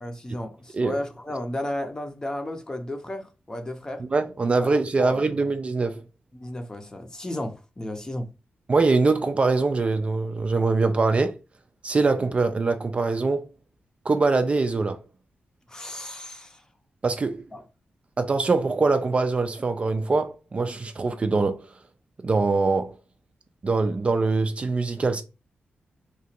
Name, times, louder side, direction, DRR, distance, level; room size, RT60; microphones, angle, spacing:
voice 1, 0.0-4.0 4.6-4.7 5.0-5.2 6.3-8.3 15.7-16.6 17.5-17.6, left 1 dB, 20° left, 0.7 m, -33 dB
voice 2, 4.0-6.0 8.7-11.4 11.8-13.5 14.1-15.0 17.0-17.4 18.2-21.7 22.2-22.9 23.6-25.2, right 3 dB, 35° right, 0.4 m, -23 dB
2.9 x 2.4 x 4.3 m
wide cardioid pair, 110°, 4 cm